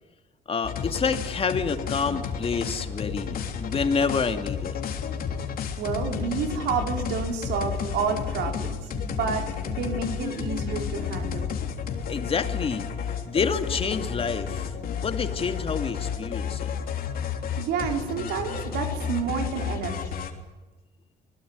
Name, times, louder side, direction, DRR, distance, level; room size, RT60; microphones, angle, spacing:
voice 1, 0.5-4.8 12.0-12.9 13.2-16.7, left 5 dB, 35° left, 7 dB, 2.5 m, -28 dB
sound 1, 0.6-20.3, left 7 dB, 60° left, 3.3 m, -31 dB
voice 2, 5.8-11.5 17.6-20.1, right 6 dB, 80° right, 4 dB, 4.1 m, -30 dB
26.0 x 19.5 x 9.6 m, 1.1 s
cardioid pair, 110°, 17 cm